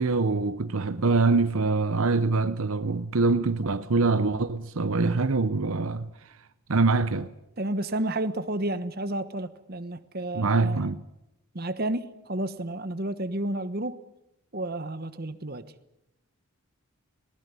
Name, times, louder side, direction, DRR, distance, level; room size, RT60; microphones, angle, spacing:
voice 1, 0.0-6.1 6.7-7.3 10.3-11.0, right 3 dB, 70° right, 0.8 m, -24 dB
voice 2, 7.6-10.8 11.5-14.0 14.5-15.6, right 1 dB, 45° right, 1.2 m, -31 dB
20.0 x 19.0 x 9.7 m
head